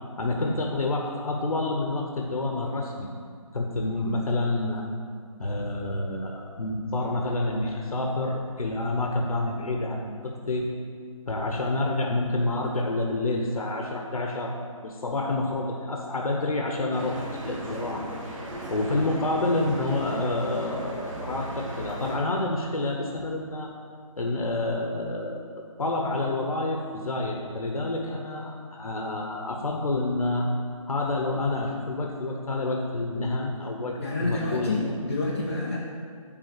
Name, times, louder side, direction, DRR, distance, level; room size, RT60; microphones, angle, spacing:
voice 1, 0.2-3.1 3.5-4.8 5.4-10.7 11.3-14.5 14.8-18.0 18.7-23.7 24.2-25.4 25.8-30.5 30.9-34.9, left 2 dB, 80° left, 1 dB, 1.0 m, -28 dB
sound 1, 16.9-22.2, right 1 dB, 65° right, 2.1 m, -37 dB
voice 2, 34.0-35.8, left 2 dB, 25° left, -6 dB, 0.5 m, -28 dB
8.8 x 3.7 x 6.7 m, 2.1 s
figure-of-eight pair, 165°, 18 cm